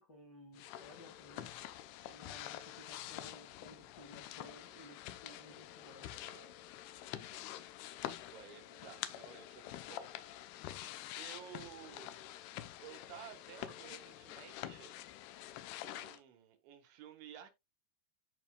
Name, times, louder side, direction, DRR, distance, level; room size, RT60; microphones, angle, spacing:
voice 1, 0.0-1.7 2.1-6.2, left 1 dB, 50° left, 1.2 m, -57 dB
sound 1, 0.5-16.2, left 13 dB, 75° left, 2.6 m, -47 dB
voice 2, 5.8-6.6 7.2-7.5 8.3-10.1 10.8-10.9 11.2-12.1 12.8-14.9 15.9-17.5, right 10 dB, 80° right, 3.7 m, -54 dB
13.5 x 5.1 x 2.3 m
omnidirectional pair, 5.2 m